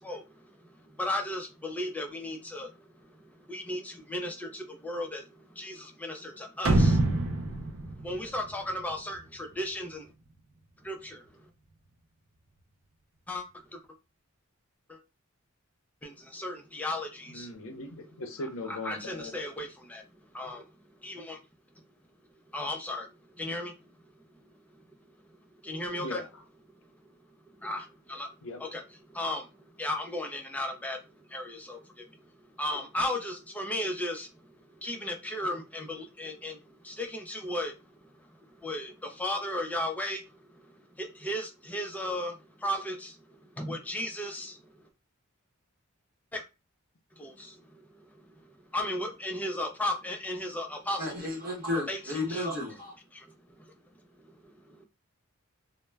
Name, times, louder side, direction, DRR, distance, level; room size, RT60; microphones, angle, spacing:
voice 1, 0.0-10.1 10.8-11.5 13.3-13.8 14.9-15.0 16.0-17.7 18.7-21.4 22.5-23.7 24.4-26.2 26.7-26.9 27.2-28.3 28.6-28.8 29.1-44.9 46.3-46.4 47.2-51.3 51.9-52.5 53.1-53.3 53.6-53.8 54.2-54.9, left 1 dB, 5° left, 0.4 m, -36 dB
sound 1, 6.7-9.2, right 2 dB, 75° right, 0.5 m, -26 dB
voice 2, 17.3-19.3 26.0-26.3 28.4-28.6, left 2 dB, 70° left, 0.6 m, -39 dB
voice 3, 51.0-52.9, left 2 dB, 45° right, 0.9 m, -33 dB
2.1 x 2.0 x 3.2 m
head